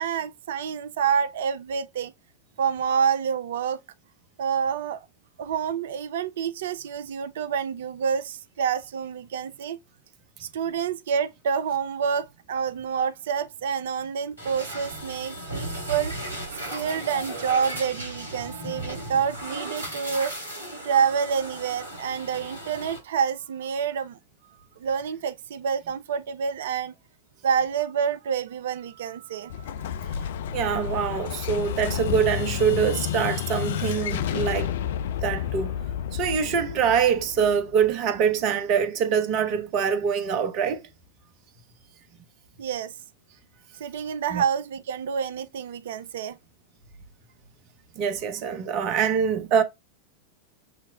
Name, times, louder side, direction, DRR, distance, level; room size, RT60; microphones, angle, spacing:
voice 1, 0.0-2.1 2.6-3.8 4.4-5.1 5.4-9.8 10.4-16.1 16.7-20.3 20.8-24.2 24.8-26.9 27.4-29.7 42.6-42.9 43.7-46.4, right 7 dB, 60° right, 0.4 m, -28 dB
sound 1, 14.4-23.0, right 1 dB, 90° left, 2.8 m, -36 dB
Explosion, 29.5-38.2, left 9 dB, 55° left, 0.4 m, -30 dB
voice 2, 30.5-34.7 35.2-35.7 36.1-40.8 44.3-44.4 48.0-49.6, right 7 dB, 40° right, 0.8 m, -24 dB
6.9 x 3.0 x 2.2 m
figure-of-eight pair, 90°, 0 cm